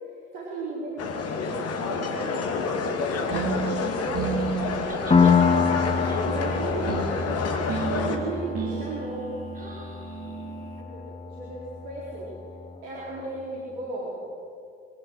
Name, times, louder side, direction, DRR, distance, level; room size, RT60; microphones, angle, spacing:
voice 1, 0.3-4.9 6.3-9.3 10.8-12.3 12.8-14.2, right 2 dB, 60° right, -6 dB, 4.3 m, -35 dB
sound 1, 1.0-8.2, left 4 dB, 45° left, 2.2 m, -29 dB
sound 2, 3.3-10.8, right 5 dB, 45° right, 2.7 m, -34 dB
voice 2, 4.3-4.6 4.9-5.4 5.8-6.4 9.5-10.6, right 2 dB, 25° right, -1 dB, 4.8 m, -43 dB
Piano, 5.1-12.5, left 5 dB, 15° left, 1.8 m, -26 dB
23.5 x 18.0 x 6.3 m, 2.4 s
figure-of-eight pair, 55°, 34 cm